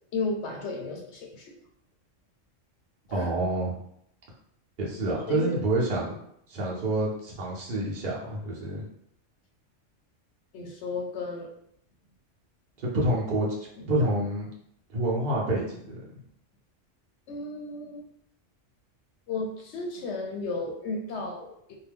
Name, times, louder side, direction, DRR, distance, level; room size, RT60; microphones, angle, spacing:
voice 1, 0.1-1.5 3.1-3.3 5.1-5.5 10.5-11.5 13.8-14.1 17.3-18.1 19.3-21.8, left 3 dB, 70° left, 2 dB, 0.8 m, -34 dB
voice 2, 3.1-3.8 4.8-6.2 6.5-8.8 12.9-13.5 13.9-14.5 14.9-16.0, right 1 dB, 45° right, -4 dB, 0.9 m, -27 dB
2.7 x 2.2 x 3.4 m, 0.71 s
omnidirectional pair, 1.3 m